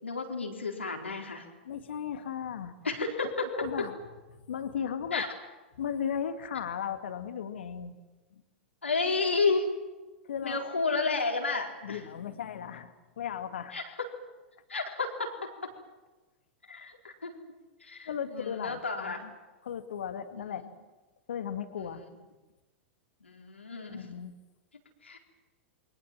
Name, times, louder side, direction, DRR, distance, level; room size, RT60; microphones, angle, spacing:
voice 1, 0.0-1.5 2.8-3.7 5.1-5.3 8.8-9.7 10.4-12.0 13.7-13.8 14.7-15.5 16.6-17.4 17.8-19.2 20.3-20.7 22.0-22.1 23.2-24.1 25.0-25.2, left 4 dB, 85° left, 1 dB, 4.4 m, -31 dB
voice 2, 1.6-2.8 3.5-3.9 4.4-5.2 5.8-8.0 10.3-10.6 11.8-13.8 18.0-19.3 19.6-20.7 21.3-22.0 23.9-24.4, left 8 dB, 70° left, 8 dB, 2.3 m, -36 dB
28.5 x 23.0 x 7.6 m, 1.2 s
figure-of-eight pair, 95°, 6 cm